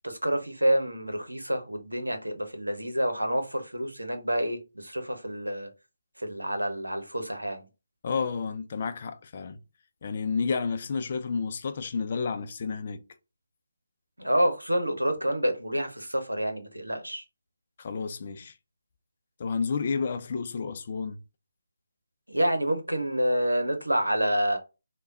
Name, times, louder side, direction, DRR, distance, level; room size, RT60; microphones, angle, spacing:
voice 1, 0.0-5.7 6.2-7.6 14.2-17.2 22.3-24.6, equal, 90° right, 0.8 m, -28 dB
voice 2, 8.0-9.6 10.0-13.0 17.8-18.5 19.4-21.2, left 5 dB, 40° left, 0.5 m, -31 dB
3.4 x 2.2 x 3.9 m
figure-of-eight pair, 150°, 0 cm